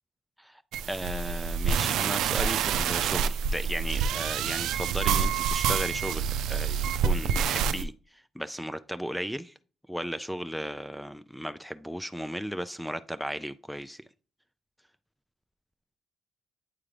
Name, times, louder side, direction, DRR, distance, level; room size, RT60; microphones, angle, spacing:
sound 1, 0.7-7.8, right 7 dB, 85° right, 0.4 m, -27 dB
voice 1, 0.9-9.5 9.9-14.0, equal, ahead, 0.3 m, -35 dB
8.6 x 3.7 x 3.3 m
cardioid pair, 90°, 0 cm